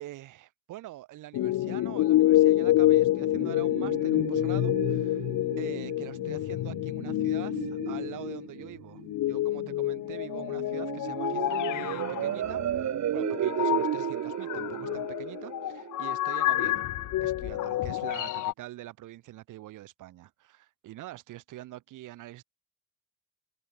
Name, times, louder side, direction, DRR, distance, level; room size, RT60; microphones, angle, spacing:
voice 1, 0.0-5.3 5.6-16.9 17.2-22.4, right 15 dB, 90° right, 5.4 m, -44 dB
sound 1, 1.3-8.5 9.0-18.5, left 15 dB, 85° left, 2.6 m, -28 dB
sound 2, 2.8-16.8, right 11 dB, 65° right, 1.7 m, -35 dB
cardioid pair, 90°, 30 cm